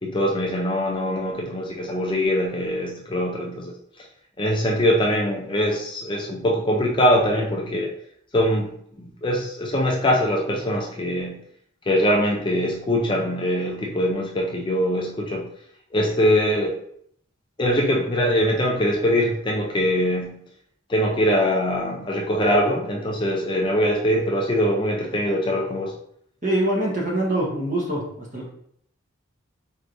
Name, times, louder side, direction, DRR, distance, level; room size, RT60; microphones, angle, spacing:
voice 1, 0.0-3.7 4.4-7.9 8.3-8.7 9.2-11.4 11.9-15.4 15.9-16.7 17.6-20.4 20.9-25.9, equal, 20° left, -1 dB, 0.4 m, -22 dB
voice 2, 26.4-28.5, right 1 dB, 35° right, -3 dB, 1.1 m, -24 dB
4.4 x 3.4 x 2.6 m, 0.68 s
head